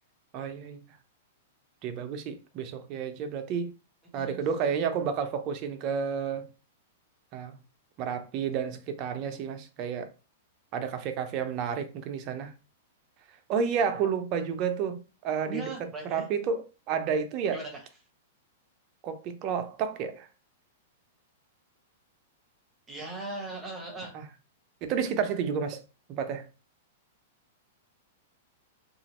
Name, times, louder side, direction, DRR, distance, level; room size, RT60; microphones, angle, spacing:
voice 1, 0.3-0.8 1.8-3.7 4.1-6.5 7.3-7.6 8.0-10.1 10.7-12.5 13.5-15.6 16.0-17.6 19.0-20.3 24.1-24.2 24.8-25.8 26.1-26.5, right 6 dB, 40° right, 0.5 m, -31 dB
voice 2, 15.5-16.3 17.5-17.8 22.9-24.1, right 2 dB, 15° right, 0.9 m, -38 dB
2.9 x 2.4 x 2.9 m
hypercardioid pair, 140°, 0 cm